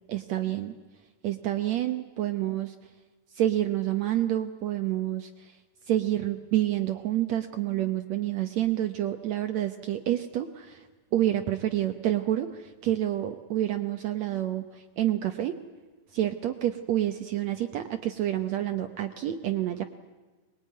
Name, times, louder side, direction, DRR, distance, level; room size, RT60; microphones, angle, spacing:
voice 1, 0.1-0.7 1.2-2.8 3.3-5.6 5.9-10.9 11.1-15.5 16.1-19.8, right 12 dB, 70° right, 8 dB, 1.8 m, -28 dB
23.5 x 21.5 x 9.4 m, 1.3 s
omnidirectional pair, 4.1 m